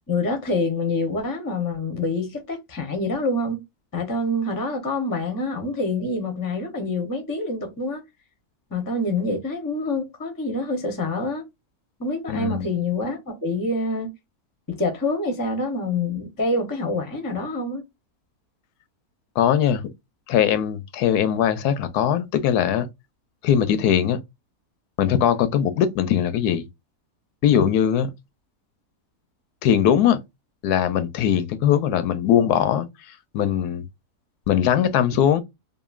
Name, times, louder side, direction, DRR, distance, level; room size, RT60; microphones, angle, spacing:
voice 1, 0.1-3.6 3.9-8.0 8.7-11.4 12.0-14.1 14.7-17.8, left 2 dB, 25° left, 0.4 m, -26 dB
voice 2, 12.3-12.7 19.4-19.8 20.3-22.9 23.4-24.2 25.0-26.7 27.4-28.1 29.6-30.2 30.6-32.9 33.3-33.9 34.5-35.4, left 9 dB, 85° left, 1.1 m, -20 dB
2.9 x 2.5 x 2.3 m
omnidirectional pair, 1.6 m